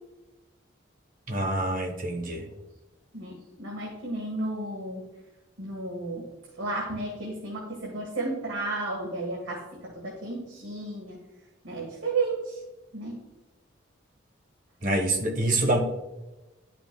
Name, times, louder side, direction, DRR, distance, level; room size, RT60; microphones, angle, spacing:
voice 1, 1.3-2.4 14.8-15.8, right 2 dB, 40° right, 3 dB, 1.0 m, -26 dB
voice 2, 3.1-5.0 5.6-6.3 6.6-11.2 11.6-12.6 12.9-13.1, right 2 dB, 80° right, -3 dB, 1.5 m, -33 dB
10.5 x 5.8 x 2.3 m, 1.0 s
head